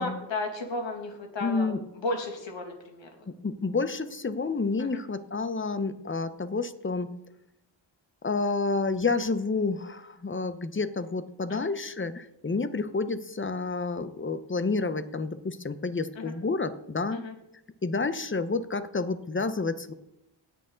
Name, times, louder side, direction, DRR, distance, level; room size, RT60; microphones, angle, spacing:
voice 1, 0.0-3.1 4.8-5.0 11.5-11.7 16.2-16.3 17.1-17.3, left 2 dB, 75° left, 2 dB, 2.3 m, -34 dB
voice 2, 1.4-1.8 3.3-7.1 8.2-17.2 17.8-19.9, left 3 dB, 25° left, 12 dB, 0.8 m, -29 dB
17.5 x 6.5 x 3.9 m, 0.86 s
cardioid pair, 70°, 45 cm